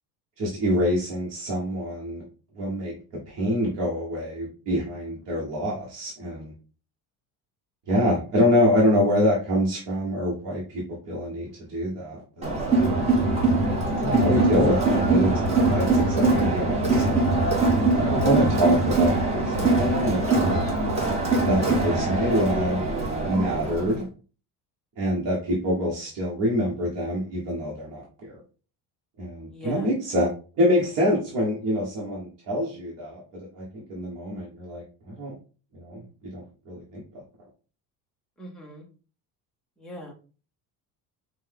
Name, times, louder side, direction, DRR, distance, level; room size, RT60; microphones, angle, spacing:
voice 1, 0.4-2.2 2.6-2.9 3.3-6.5 7.9-12.6 13.7-17.2 18.1-20.6 21.4-22.8 23.2-24.0 25.0-28.3 29.2-30.3 30.6-35.3 35.7-36.0 36.3-37.0, equal, 40° right, -5 dB, 1.3 m, -26 dB
Crowd, 12.4-24.0, right 2 dB, 15° right, 1.2 m, -22 dB
voice 2, 29.5-29.9 38.4-38.9 39.8-40.1, right 1 dB, ahead, -1 dB, 0.6 m, -39 dB
5.7 x 2.2 x 3.6 m, 0.36 s
cardioid pair, 175°, 41 cm